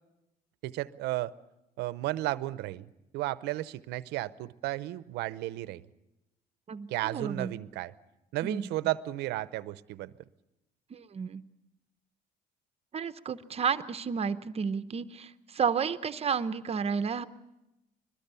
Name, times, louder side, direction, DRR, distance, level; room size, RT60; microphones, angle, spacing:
voice 1, 0.6-1.3 1.8-5.9 6.9-7.9 8.3-10.1, right 16 dB, 90° right, 16 dB, 0.7 m, -33 dB
voice 2, 6.7-7.6 8.4-8.7 10.9-11.4 12.9-17.3, right 6 dB, 35° right, 11 dB, 0.7 m, -32 dB
22.5 x 21.0 x 6.9 m, 0.93 s
cardioid pair, 110°, 17 cm